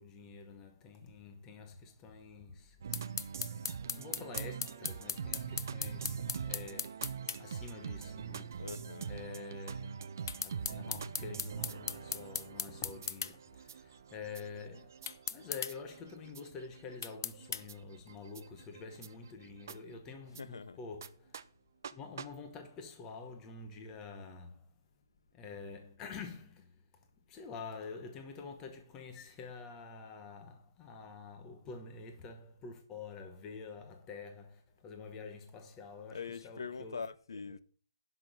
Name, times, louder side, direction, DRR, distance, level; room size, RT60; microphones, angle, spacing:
voice 1, 0.0-2.8 3.6-8.6 9.1-10.1 10.3-21.4 21.9-24.7 25.3-26.8 27.3-37.0 37.5-37.6, left 4 dB, 10° left, 1.0 m, -48 dB
sound 1, 2.8-20.4 21.0-21.1 21.3-21.4 21.8-21.9 22.2-22.3, right 7 dB, 45° right, 0.6 m, -44 dB
sound 2, 2.9-7.4 10.3-13.3 15.1-15.7 17.0-17.6, left 6 dB, 50° left, 0.5 m, -37 dB
voice 2, 8.6-9.1 20.4-20.8 36.1-37.6, left 5 dB, 80° left, 0.9 m, -43 dB
10.5 x 6.0 x 6.1 m
hypercardioid pair, 175°, 2 cm